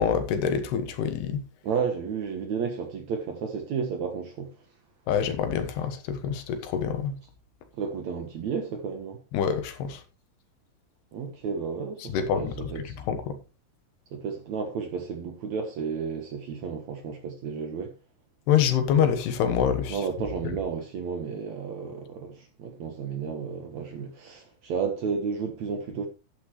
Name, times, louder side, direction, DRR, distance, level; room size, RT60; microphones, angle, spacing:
voice 1, 0.0-1.4 5.1-7.2 9.3-10.0 12.0-13.4 18.5-20.0, left 8 dB, 85° left, 3.4 m, -26 dB
voice 2, 1.6-4.5 7.8-9.2 11.1-13.0 14.1-17.9 19.9-26.1, right 6 dB, 60° right, 2.0 m, -32 dB
12.0 x 9.4 x 3.1 m
omnidirectional pair, 4.6 m